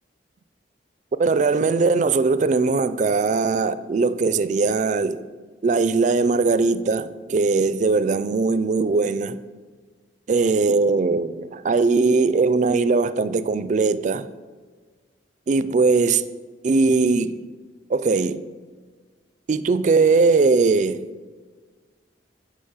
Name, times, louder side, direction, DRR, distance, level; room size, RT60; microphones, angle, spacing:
voice 1, 1.2-5.3 5.6-9.4 10.3-14.3 15.5-16.2 16.6-17.5 17.9-18.4 19.5-21.1, right 4 dB, 45° right, 0.4 m, -20 dB
10.0 x 5.1 x 5.6 m
head